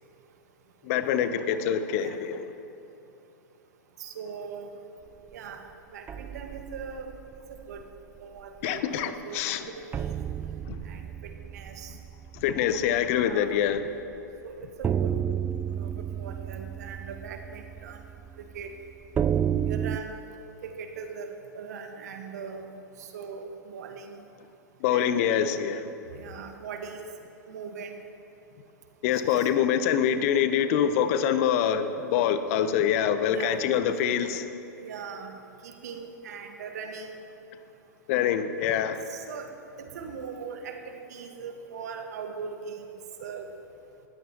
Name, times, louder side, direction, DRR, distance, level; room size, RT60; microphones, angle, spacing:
voice 1, 0.8-2.5 8.6-9.7 10.7-10.8 12.3-13.8 24.8-25.9 29.0-34.5 38.1-39.0, left 9 dB, 50° left, 10 dB, 0.9 m, -25 dB
voice 2, 4.0-4.7 5.3-7.1 7.5-7.9 8.2-10.2 10.8-11.9 13.2-13.6 14.4-15.2 15.7-18.0 18.5-18.7 19.7-20.2 20.6-24.2 24.9-25.1 26.1-27.0 27.5-28.0 29.1-29.5 33.3-34.1 34.8-37.1 39.1-39.5 39.8-42.9 43.2-43.5, right 5 dB, 65° right, 5 dB, 1.5 m, -40 dB
sound 1, 6.1-8.0 8.4-8.6 9.0-9.1 9.9-13.8 14.1-14.2 14.8-20.0, right 9 dB, 20° right, 0.3 m, -32 dB
19.5 x 14.0 x 3.0 m, 2.8 s
hypercardioid pair, 105°, 10 cm